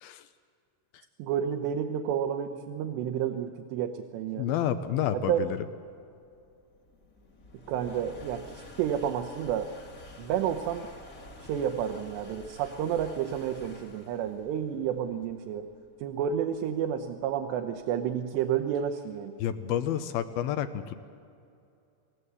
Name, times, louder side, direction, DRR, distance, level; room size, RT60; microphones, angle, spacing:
voice 1, 1.2-4.5 5.3-5.5 7.7-8.4 8.8-9.7 10.2-10.9 11.4-15.7 16.0-19.3, right 9 dB, 80° right, 4 dB, 3.1 m, -30 dB
voice 2, 4.4-5.6 19.4-21.0, left 10 dB, 80° left, 11 dB, 2.3 m, -29 dB
sound 1, 6.1-18.0, left 2 dB, 45° left, 1.0 m, -51 dB
28.5 x 18.0 x 8.2 m, 2.5 s
omnidirectional pair, 5.0 m